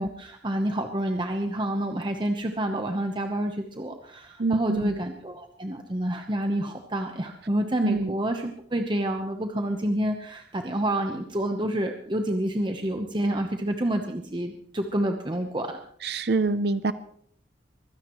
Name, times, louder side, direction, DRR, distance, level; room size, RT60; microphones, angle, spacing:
voice 1, 0.0-15.8, right 1 dB, 25° right, 4 dB, 1.0 m, -28 dB
voice 2, 4.4-5.0 7.8-8.1 16.0-16.9, right 3 dB, 60° right, 13 dB, 0.6 m, -25 dB
23.5 x 16.0 x 3.1 m, 0.64 s
head